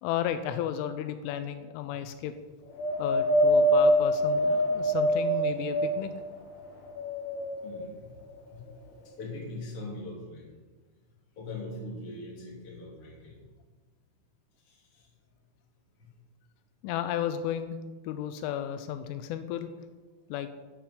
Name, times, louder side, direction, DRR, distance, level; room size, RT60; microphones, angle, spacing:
voice 1, 0.0-2.3 3.0-6.1 16.8-17.8 18.0-19.7 20.3-20.5, left 10 dB, 85° left, 10 dB, 3.2 m, -33 dB
Wind, 2.8-6.3 6.9-7.9 8.7-8.8, equal, 60° left, 3.1 m, -25 dB
voice 2, 7.6-8.1 8.5-8.6 9.2-10.4 11.4-13.4, left 2 dB, 35° left, -3 dB, 3.3 m, -40 dB
10.5 x 8.7 x 7.2 m, 1.3 s
omnidirectional pair, 5.6 m